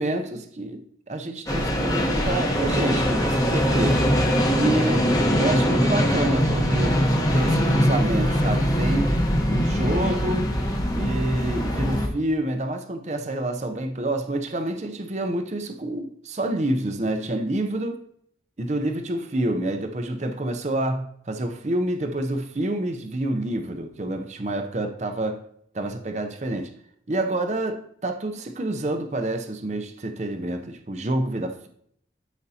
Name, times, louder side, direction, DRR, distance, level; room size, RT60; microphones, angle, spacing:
voice 1, 0.0-4.0 4.5-5.0 5.4-7.0 7.3-9.1 9.5-10.5 10.9-18.0 18.6-25.4 25.7-26.7 27.1-31.7, right 1 dB, 40° right, 6 dB, 0.6 m, -27 dB
sound 1, 1.5-12.1, equal, 20° left, 1.0 m, -22 dB
12.5 x 5.1 x 2.8 m, 0.67 s
head